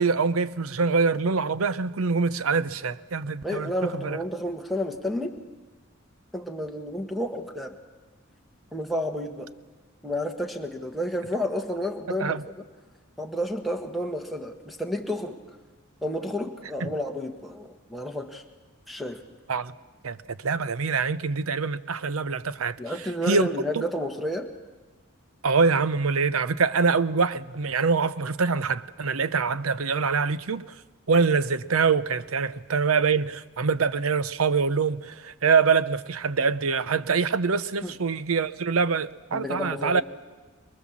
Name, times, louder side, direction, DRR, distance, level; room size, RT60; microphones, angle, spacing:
voice 1, 0.0-4.2 12.2-12.4 16.8-16.9 19.5-19.7 20.0-20.2 20.4-22.8 23.3-23.5 23.7-23.8 25.4-30.6 31.1-40.0, right 5 dB, 85° right, 0.7 m, -24 dB
voice 2, 3.4-5.3 6.3-7.8 8.7-9.5 10.0-12.4 13.2-15.4 16.0-18.4 18.9-19.2 22.8-24.5 37.8-38.0 39.3-40.0, left 1 dB, ahead, 1.5 m, -31 dB
23.5 x 22.0 x 7.4 m
head